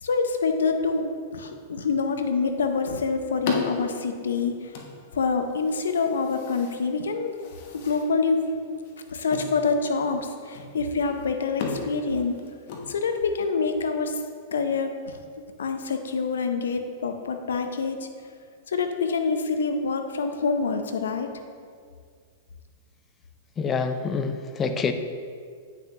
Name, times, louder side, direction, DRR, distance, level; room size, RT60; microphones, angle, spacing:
voice 1, 0.0-4.7 5.1-7.3 7.8-8.6 9.1-12.4 12.9-14.2 14.5-15.2 15.6-18.0 18.7-21.3, left 4 dB, 75° left, 7 dB, 0.6 m, -26 dB
sound 1, 2.4-13.5, left 4 dB, 55° left, 1.1 m, -37 dB
voice 2, 23.6-24.9, left 5 dB, 25° left, 8 dB, 0.6 m, -26 dB
9.0 x 6.0 x 2.9 m, 2.1 s
hypercardioid pair, 105°, 0 cm